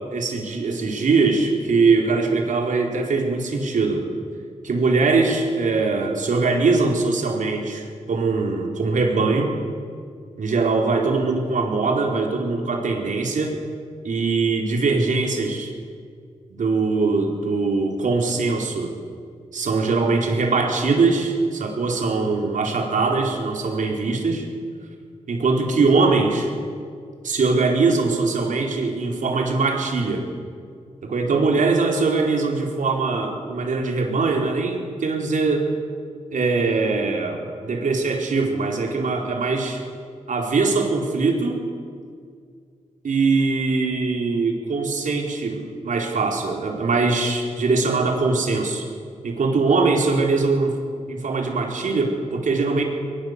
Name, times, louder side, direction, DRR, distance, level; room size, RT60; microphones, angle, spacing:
voice 1, 0.1-4.0 4.6-9.5 10.4-13.6 14.0-15.7 16.5-19.0 19.5-24.5 25.3-26.5 27.2-30.3 31.0-35.7 36.3-39.8 40.3-41.6 43.0-48.8 49.2-50.8 51.1-52.8, right 3 dB, 75° right, 1 dB, 4.5 m, -22 dB
23.0 x 21.0 x 8.3 m, 2.1 s
wide cardioid pair, 100°, 13 cm